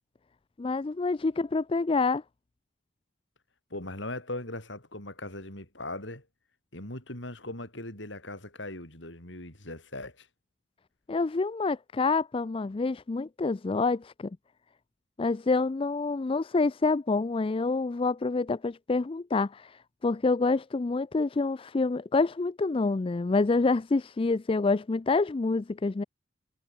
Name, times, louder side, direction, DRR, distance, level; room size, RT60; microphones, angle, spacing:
voice 1, 0.6-2.2 11.1-14.3 15.2-26.0, left 3 dB, 25° left, 0.4 m, -27 dB
voice 2, 3.7-6.3 6.7-10.3, left 2 dB, 65° left, 6.9 m, -39 dB
head